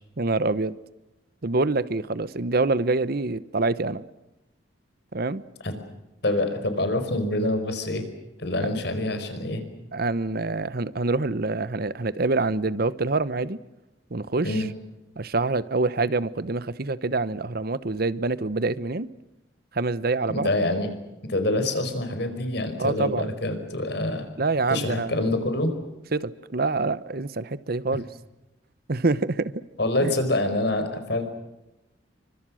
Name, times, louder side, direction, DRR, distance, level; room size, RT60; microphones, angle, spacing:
voice 1, 0.2-0.8 1.4-4.0 5.1-5.4 9.9-13.6 14.1-14.6 15.2-19.1 19.7-20.5 22.8-23.3 24.4-25.2 26.1-28.1 28.9-29.5 30.0-30.1, right 3 dB, 55° right, 0.9 m, -26 dB
voice 2, 6.2-8.1 8.4-9.6 14.4-14.7 20.3-20.9 21.3-24.3 24.7-25.7 29.8-31.2, left 1 dB, 60° left, 4.9 m, -26 dB
29.5 x 25.0 x 6.4 m
head